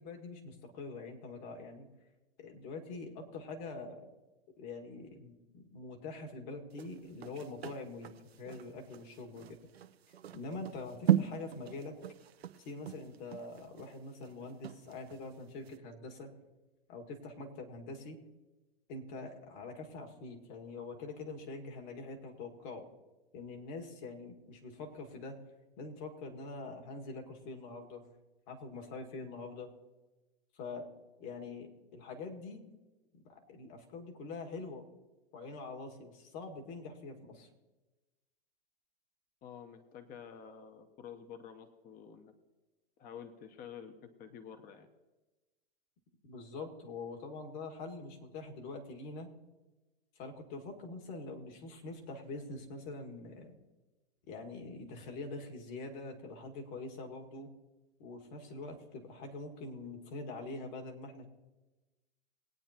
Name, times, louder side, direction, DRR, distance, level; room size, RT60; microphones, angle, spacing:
voice 1, 0.0-1.9 2.4-4.1 4.6-9.6 10.3-11.9 12.6-16.3 16.9-18.2 18.9-22.8 23.3-25.4 25.8-28.0 28.5-29.7 30.6-30.9 31.2-32.6 33.3-34.9 35.3-37.5 46.2-49.3 50.2-53.5 54.3-57.5 58.0-61.2, left 3 dB, 50° left, 2 dB, 2.0 m, -44 dB
sound 1, 6.7-15.3 15.6-15.8, right 11 dB, 90° right, 0.7 m, -36 dB
voice 2, 39.4-42.3 43.0-44.9, left 7 dB, 30° left, 8 dB, 1.0 m, -50 dB
20.5 x 9.0 x 2.9 m, 1.1 s
hypercardioid pair, 115°, 30 cm